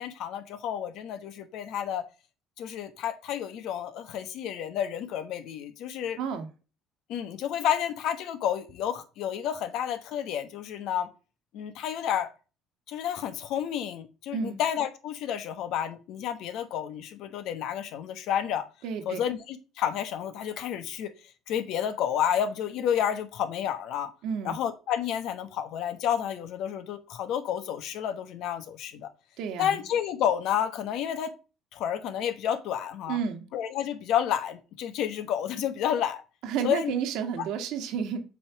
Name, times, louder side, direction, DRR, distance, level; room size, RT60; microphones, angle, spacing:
voice 1, 0.0-2.1 2.6-6.2 7.1-11.1 11.5-12.3 12.9-18.7 19.1-21.1 21.5-24.1 24.4-29.1 29.6-31.3 31.7-33.2 33.5-36.2 36.6-36.9, left 9 dB, 70° left, 1.1 m, -30 dB
voice 2, 6.2-6.5 14.3-14.6 18.8-19.2 24.2-24.5 29.4-29.8 33.1-33.5 36.4-38.2, right 7 dB, 75° right, 1.6 m, -31 dB
7.5 x 3.7 x 5.8 m
cardioid pair, 100°, 0 cm